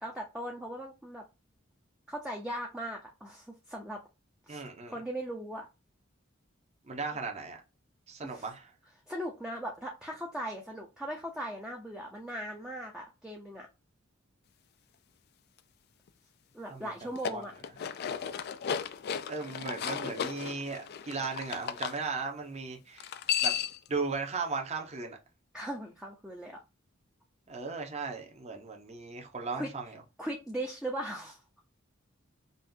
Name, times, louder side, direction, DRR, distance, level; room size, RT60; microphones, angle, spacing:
voice 1, 0.0-1.2 2.1-4.0 4.5-5.7 8.2-8.5 9.1-13.7 16.5-17.5 25.5-26.6 29.5-29.7 30.2-31.4, right 1 dB, 5° right, 0.6 m, -39 dB
voice 2, 4.5-4.9 6.8-7.6 8.1-8.7 16.7-16.9 17.3-17.4 19.3-23.1 23.4-23.5 23.9-25.2 27.5-29.9, right 4 dB, 35° right, 0.9 m, -36 dB
sound 1, 17.0-22.0 23.0-23.9, left 8 dB, 50° left, 0.3 m, -34 dB
5.4 x 2.5 x 2.7 m
head